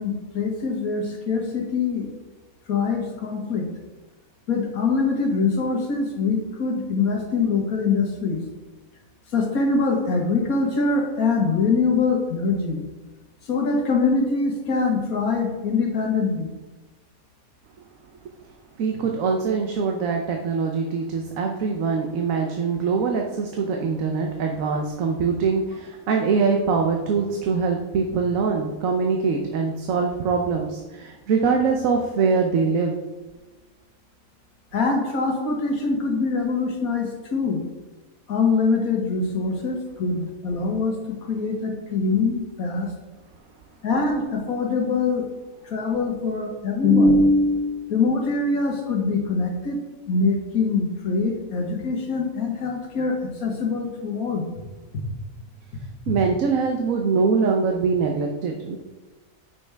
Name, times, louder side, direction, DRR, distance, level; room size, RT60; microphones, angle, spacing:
voice 1, 0.0-2.1 2.7-3.7 4.5-8.4 9.3-12.8 13.4-16.5 34.7-37.6 38.3-42.9 43.8-45.3 45.6-49.8 50.1-54.4, left 4 dB, 85° left, 1 dB, 1.8 m, -23 dB
voice 2, 18.8-32.9 56.1-58.8, right 5 dB, 70° right, 2 dB, 1.1 m, -23 dB
8.5 x 6.0 x 3.4 m, 1.2 s
omnidirectional pair, 1.5 m